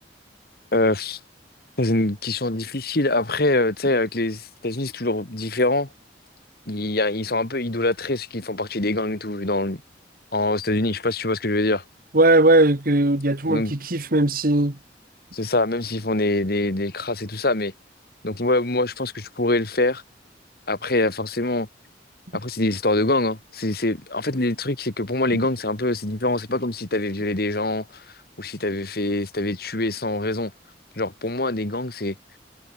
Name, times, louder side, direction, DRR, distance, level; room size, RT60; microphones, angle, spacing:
voice 1, 0.7-1.2 1.8-5.9 6.7-9.8 10.3-11.8 13.5-13.7 15.3-17.7 18.2-20.0 20.7-21.7 22.3-28.0 28.4-30.5 31.0-32.1, left 2 dB, 55° left, 2.2 m, -24 dB
voice 2, 12.1-14.8, right 2 dB, 50° right, 1.9 m, -18 dB
head